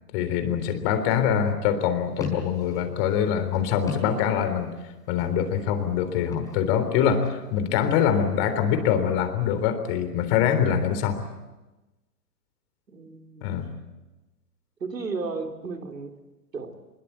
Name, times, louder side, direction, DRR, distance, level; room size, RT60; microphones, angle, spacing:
voice 1, 0.1-4.7 5.1-11.2 13.4-13.7, left 8 dB, 40° left, 9 dB, 3.7 m, -24 dB
sound 1, 2.1-4.7 5.0-5.6 6.2-7.4, left 3 dB, 5° left, 4.5 m, -39 dB
voice 2, 12.9-13.5 14.8-16.1 16.5-16.8, right 4 dB, 90° right, 4 dB, 3.9 m, -34 dB
24.0 x 22.0 x 8.4 m, 1.1 s
hypercardioid pair, 130°, 48 cm